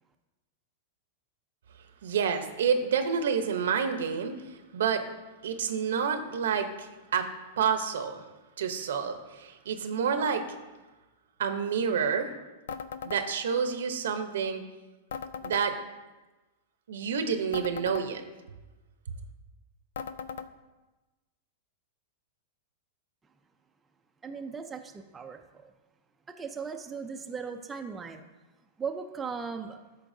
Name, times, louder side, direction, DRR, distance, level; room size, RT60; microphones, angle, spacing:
voice 1, 2.0-4.4 4.7-5.1 5.4-8.2 8.6-10.5 11.4-12.3 13.0-14.6 15.4-15.8 16.9-18.2, right 6 dB, 90° right, 8 dB, 0.8 m, -29 dB
sound 1, 12.7-13.2 15.1-15.6 17.5-18.1 20.0-20.5, left 6 dB, 85° left, 0.4 m, -38 dB
voice 2, 24.2-25.7 26.3-28.2 28.8-29.8, right 5 dB, 10° right, 4 dB, 0.4 m, -38 dB
12.5 x 4.5 x 2.7 m, 1.1 s
supercardioid pair, 155°, 0 cm